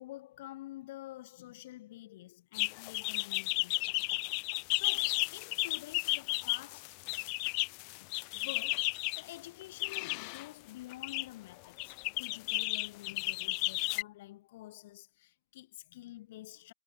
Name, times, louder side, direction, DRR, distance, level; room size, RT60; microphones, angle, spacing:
voice 1, 0.0-4.0 4.7-7.2 8.0-16.7, left 16 dB, 75° left, 7.3 m, -49 dB
sound 1, 2.5-9.2 9.8-10.5 10.9-11.3 11.8-14.0, left 40 dB or more, 50° left, 1.6 m, -33 dB
supercardioid pair, 155°, 0 cm